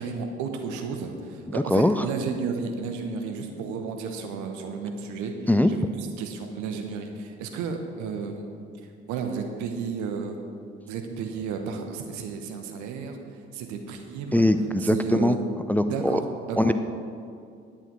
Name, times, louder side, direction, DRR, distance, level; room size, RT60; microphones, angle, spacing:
voice 1, 0.0-5.4 5.7-8.5 9.1-10.4 10.9-13.2 13.5-14.4 14.8-15.5 15.9-16.2 16.5-16.7, right 5 dB, 65° right, 4 dB, 1.2 m, -32 dB
voice 2, 1.5-2.1 5.5-5.7 14.3-15.0 15.2-15.3 15.7-16.2 16.6-16.7, left 1 dB, 5° left, 9 dB, 0.5 m, -21 dB
10.5 x 8.7 x 4.8 m, 2.4 s
figure-of-eight pair, 45°, 32 cm